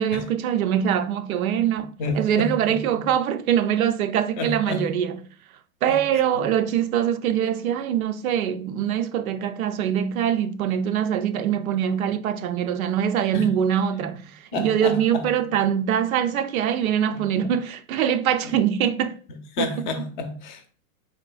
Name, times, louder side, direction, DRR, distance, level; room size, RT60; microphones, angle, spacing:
voice 1, 0.0-5.2 5.8-19.2, right 9 dB, 85° right, 0.5 m, -23 dB
voice 2, 2.0-3.1 4.4-4.9 5.9-6.0 6.4-6.5 13.3-13.5 14.5-15.3 17.1-17.2 18.4-18.5 19.3-20.7, left 3 dB, 35° left, 0.5 m, -30 dB
3.7 x 2.9 x 2.3 m
hypercardioid pair, 150°, 41 cm